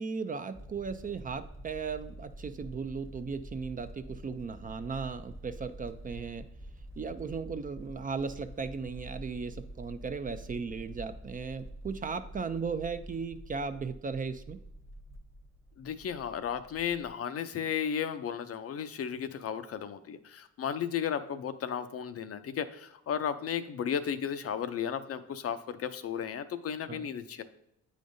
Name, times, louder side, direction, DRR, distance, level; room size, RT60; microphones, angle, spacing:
voice 1, 0.0-6.5 7.0-14.6 26.9-27.1, right 5 dB, 30° right, 10 dB, 0.4 m, -36 dB
sound 1, 0.5-17.1, right 1 dB, 10° right, 0.8 m, -47 dB
voice 2, 15.8-27.4, left 8 dB, 50° left, 11 dB, 0.5 m, -34 dB
8.5 x 5.1 x 2.6 m, 0.79 s
cardioid pair, 90°, 30 cm